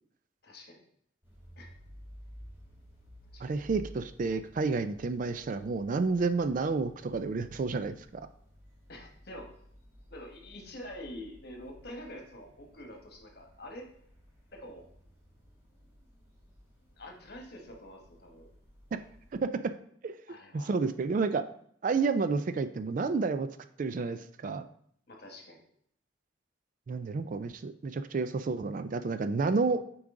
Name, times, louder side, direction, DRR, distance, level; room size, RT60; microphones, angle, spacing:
voice 1, 0.4-0.8 1.6-1.7 3.3-3.4 8.9-9.5 10.1-13.9 14.5-14.9 17.0-18.5 20.3-20.7 25.1-25.7, left 1 dB, 55° left, 2 dB, 1.3 m, -46 dB
sound 1, 1.2-19.4, equal, 10° right, 2.2 m, -54 dB
voice 2, 3.4-8.3 18.9-19.0 19.5-19.7 20.0-20.2 20.5-21.4 21.8-23.5 23.8-24.6 26.9-29.9, right 4 dB, 45° right, 11 dB, 0.3 m, -30 dB
7.4 x 4.7 x 3.7 m, 0.66 s
head